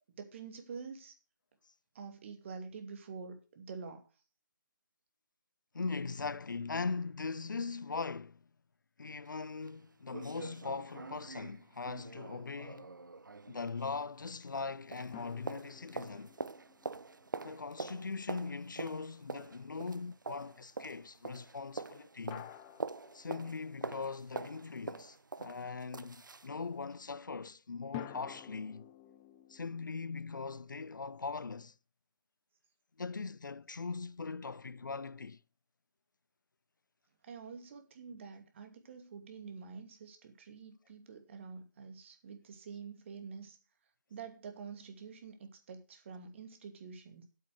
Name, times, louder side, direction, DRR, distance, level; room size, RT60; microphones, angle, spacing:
voice 1, 0.2-1.1 1.9-4.0 37.2-43.6 44.1-47.2, right 5 dB, 40° right, 2.5 m, -47 dB
voice 2, 5.7-8.4 9.0-12.9 13.5-16.3 17.4-22.5 23.1-28.9 29.5-31.7 33.0-35.4, left 4 dB, 75° left, 0.5 m, -40 dB
sound 1, 9.3-9.4 9.7-9.8 10.1-14.7 14.9-26.5 26.9-27.0, right 3 dB, 75° right, 0.8 m, -45 dB
sound 2, 15.1-18.5 22.3-24.3 27.9-31.0, left 12 dB, 15° left, 0.6 m, -52 dB
8.4 x 8.3 x 6.2 m
figure-of-eight pair, 150°, 10 cm